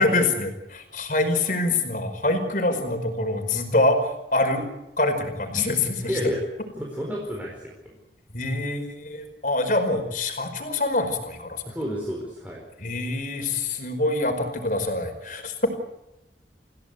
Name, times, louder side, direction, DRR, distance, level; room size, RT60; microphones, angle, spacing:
voice 1, 0.0-4.6 5.0-6.2 8.3-11.7 12.8-15.7, left 2 dB, 45° left, 6 dB, 5.0 m, -25 dB
voice 2, 6.0-6.4 6.8-8.0 11.7-12.6, equal, 10° right, -2 dB, 4.5 m, -30 dB
28.0 x 16.5 x 8.2 m, 0.92 s
head